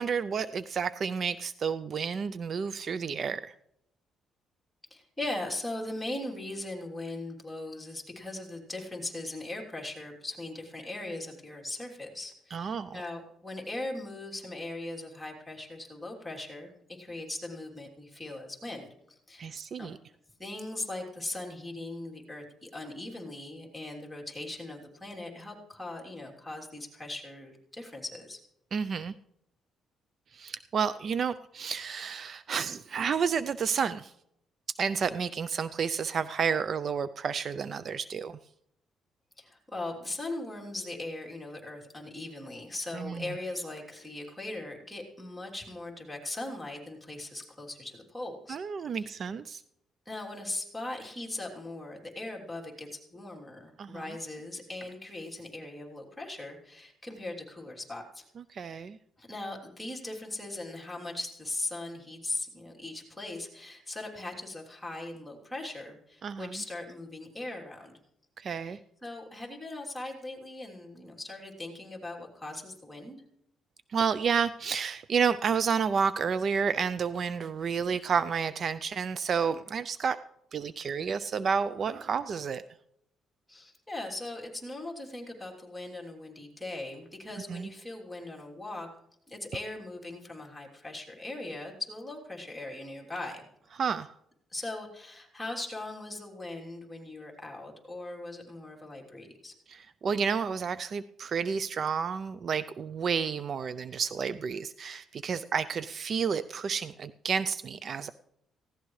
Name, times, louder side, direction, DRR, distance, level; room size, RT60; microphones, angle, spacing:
voice 1, 0.0-3.5 12.5-13.0 19.4-20.0 28.7-29.1 30.3-34.1 34.8-38.4 42.9-43.3 48.5-49.6 53.8-54.0 58.5-59.0 66.2-66.6 68.4-68.8 73.9-80.2 80.5-82.6 87.5-87.7 93.8-94.1 99.7-108.1, right 6 dB, 50° right, 14 dB, 0.4 m, -30 dB
voice 2, 4.9-19.9 20.4-28.4 39.4-48.6 48.9-49.2 50.0-58.3 59.2-67.9 68.6-73.2 83.5-88.9 89.3-93.5 94.5-99.5, left 2 dB, 5° left, -1 dB, 3.2 m, -39 dB
18.0 x 16.5 x 3.2 m, 0.77 s
cardioid pair, 95°, 0 cm